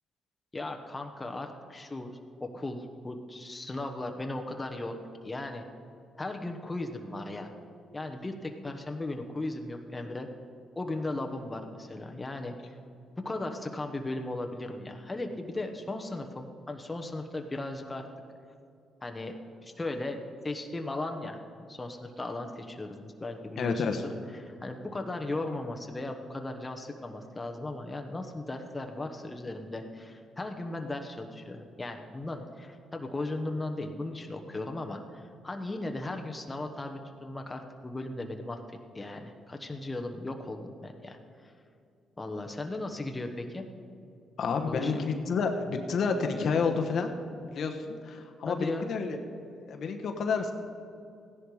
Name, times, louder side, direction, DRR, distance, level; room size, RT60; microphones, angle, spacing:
voice 1, 0.5-5.0 5.2-5.6 6.2-7.5 7.9-10.3 10.8-12.5 13.2-18.1 19.0-20.2 20.4-38.6 38.9-41.5 42.2-43.7 44.7-45.0 48.4-48.9, left 2 dB, 20° left, 4 dB, 1.0 m, -37 dB
voice 2, 23.6-24.0 44.4-47.1 47.5-49.2 49.7-50.5, left 5 dB, 60° left, 5 dB, 1.1 m, -29 dB
15.0 x 10.5 x 4.9 m, 2.6 s
cardioid pair, 90°, 0 cm